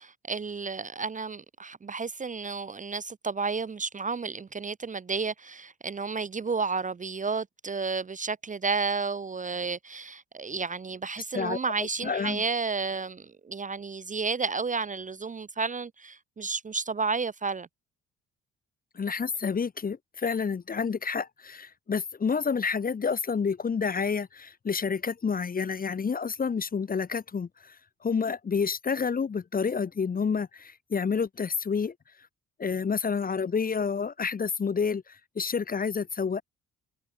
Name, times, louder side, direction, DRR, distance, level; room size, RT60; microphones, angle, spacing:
voice 1, 0.0-17.7, right 4 dB, 25° right, 0.7 m, -32 dB
voice 2, 12.0-12.4 19.0-27.7 28.0-31.9 32.6-36.4, left 5 dB, 30° left, 0.9 m, -29 dB
cardioid pair, 90°, 30 cm